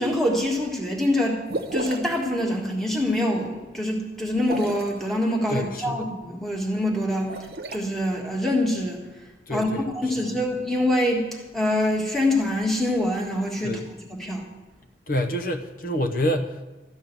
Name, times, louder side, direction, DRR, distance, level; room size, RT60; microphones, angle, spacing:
voice 1, 0.0-1.4 1.7-7.3 7.7-9.0 9.5-13.8 14.1-14.4, left 1 dB, ahead, -1 dB, 1.7 m, -25 dB
sound 1, 1.5-2.2 4.4-5.0 7.1-7.8, right 2 dB, 60° right, 0.9 m, -31 dB
voice 2, 5.5-6.0 9.5-9.8 13.6-13.8 15.1-16.6, left 1 dB, 50° left, 6 dB, 1.0 m, -27 dB
13.5 x 5.4 x 9.2 m, 1.1 s
head